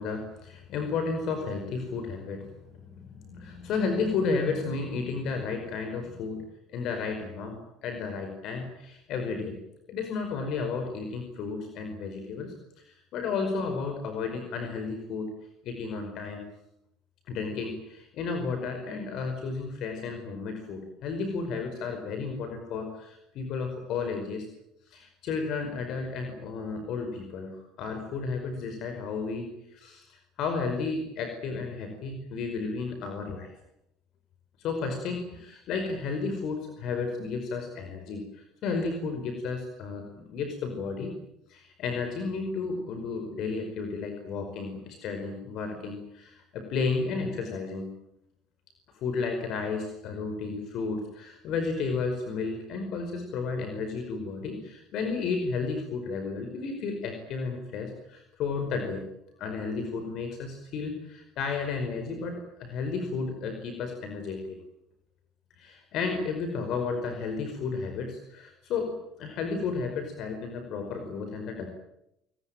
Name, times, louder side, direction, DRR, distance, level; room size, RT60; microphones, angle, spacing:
voice 1, 0.0-2.5 2.7-6.4 6.7-9.6 9.9-12.5 13.1-15.3 15.6-16.4 17.3-24.4 24.9-33.5 34.6-41.2 41.5-47.9 49.0-59.1 59.4-64.6 65.6-71.7, left 4 dB, 65° left, 6 dB, 5.1 m, -33 dB
26.5 x 20.0 x 9.1 m, 0.82 s
cardioid pair, 105°, 0 cm